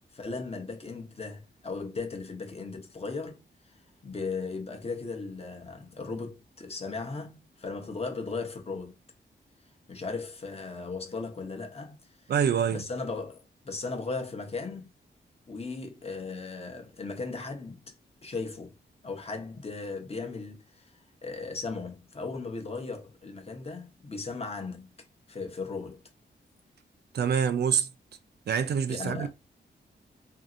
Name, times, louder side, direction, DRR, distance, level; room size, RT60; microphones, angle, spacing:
voice 1, 0.1-3.8 4.0-8.9 9.9-12.3 12.7-14.9 15.5-17.9 18.2-18.7 19.0-24.9 25.3-26.0 28.9-29.3, left 4 dB, 35° left, 0.8 m, -37 dB
voice 2, 12.3-12.8 27.1-27.9 28.5-29.3, right 7 dB, 60° right, 0.4 m, -26 dB
2.7 x 2.7 x 2.5 m
wide cardioid pair, 120°, 19 cm